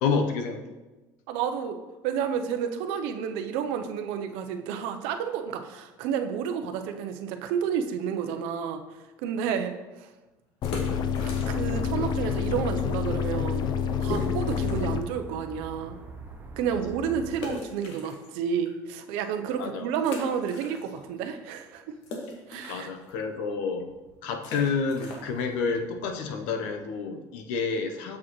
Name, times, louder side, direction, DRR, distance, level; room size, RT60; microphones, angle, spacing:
voice 1, 0.0-0.6 19.6-19.9 22.7-23.9 24.2-28.2, left 5 dB, 90° left, 6 dB, 0.8 m, -29 dB
voice 2, 1.3-1.8 2.0-8.8 9.2-9.7 10.0-10.1 11.5-13.7 14.0-16.0 16.6-21.9 22.5-22.9, right 7 dB, 85° right, 7 dB, 0.6 m, -30 dB
sound 1, 10.5-11.9 12.1-12.2 12.8-12.9 13.2-13.3 14.0-14.9 15.4-15.5 17.3-18.7 19.2-19.3 20.0-21.2 21.5-27.0, left 1 dB, 70° left, 1.6 m, -40 dB
sound 2, 10.6-15.0, left 7 dB, 50° left, 0.5 m, -28 dB
sound 3, 11.0-17.5, right 3 dB, 20° right, 1.3 m, -43 dB
7.3 x 6.2 x 3.1 m, 1.1 s
cardioid pair, 115°, 10 cm